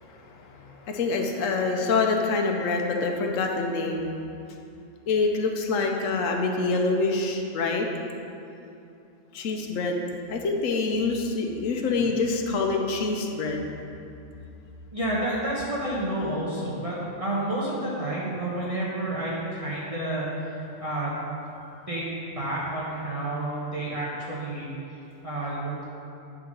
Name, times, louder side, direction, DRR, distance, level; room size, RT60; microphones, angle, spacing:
voice 1, 0.0-4.2 5.1-7.9 9.3-10.0 10.3-13.7, left 3 dB, 80° left, 2 dB, 1.1 m, -26 dB
voice 2, 14.9-21.1 21.9-22.1 22.3-24.7 25.2-25.8, right 1 dB, 30° right, -7 dB, 1.0 m, -30 dB
9.4 x 4.0 x 5.3 m, 2.7 s
omnidirectional pair, 1.3 m